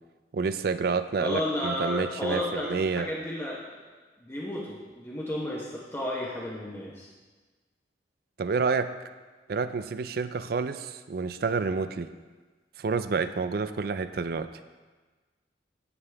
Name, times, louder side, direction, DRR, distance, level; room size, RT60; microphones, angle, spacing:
voice 1, 0.3-3.1 8.4-8.9 9.5-12.1 12.8-14.5, right 4 dB, 55° right, 11 dB, 0.4 m, -29 dB
voice 2, 1.2-3.8 4.2-7.1, left 1 dB, 15° left, -5 dB, 1.0 m, -33 dB
9.7 x 8.9 x 3.5 m, 1.3 s
head